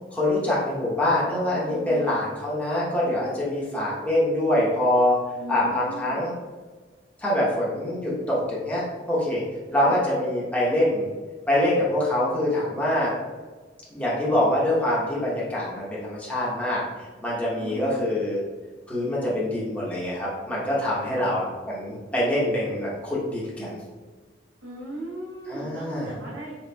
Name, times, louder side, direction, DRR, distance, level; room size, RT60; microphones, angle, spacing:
voice 1, 0.1-5.1 5.5-6.3 7.2-9.4 9.7-11.1 11.5-13.1 13.9-18.4 18.9-23.8 25.5-26.1, left 1 dB, 5° left, -7 dB, 0.9 m, -25 dB
voice 2, 1.7-2.2 5.4-6.2 9.8-10.0 17.6-18.0 21.0-21.3 24.6-26.6, right 1 dB, 75° right, -7 dB, 0.9 m, -37 dB
4.2 x 4.0 x 2.3 m, 1.4 s
head